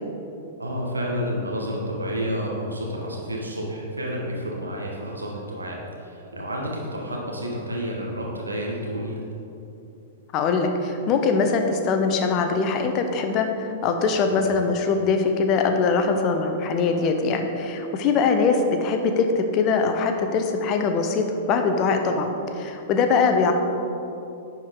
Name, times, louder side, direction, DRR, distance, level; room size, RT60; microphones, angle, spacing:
voice 1, 0.6-9.2 14.2-14.4, equal, 90° right, -2 dB, 1.5 m, -30 dB
voice 2, 10.3-22.3 22.5-23.5, left 4 dB, 35° left, 5 dB, 0.8 m, -22 dB
10.0 x 4.8 x 3.9 m, 2.8 s
figure-of-eight pair, 105°, 0 cm